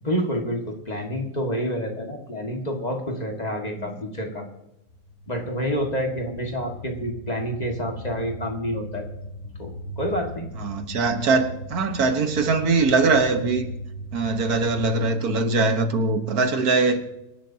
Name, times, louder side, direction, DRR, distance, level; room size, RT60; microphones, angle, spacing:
voice 1, 0.0-4.4 5.3-9.1 9.6-10.5, equal, 25° left, 2.0 m, -28 dB
sound 1, 4.9-14.9, left 1 dB, 70° left, 1.7 m, -38 dB
voice 2, 10.6-13.7 14.1-17.0, right 3 dB, 80° right, 1.8 m, -22 dB
25.5 x 11.5 x 2.8 m
omnidirectional pair, 1.6 m